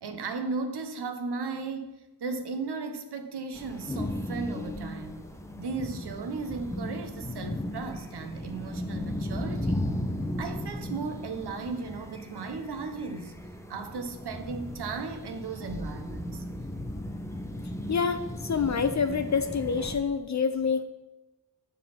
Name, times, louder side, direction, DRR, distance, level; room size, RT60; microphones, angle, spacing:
voice 1, 0.0-5.3 5.6-9.9 10.4-13.3 13.7-16.4, right 4 dB, 70° right, 7 dB, 0.9 m, -36 dB
sound 1, 3.5-20.0, left 1 dB, 5° left, 0.7 m, -36 dB
voice 2, 17.9-20.9, left 6 dB, 45° left, 9 dB, 0.5 m, -27 dB
7.4 x 4.1 x 5.8 m, 1.1 s
cardioid pair, 70°, 41 cm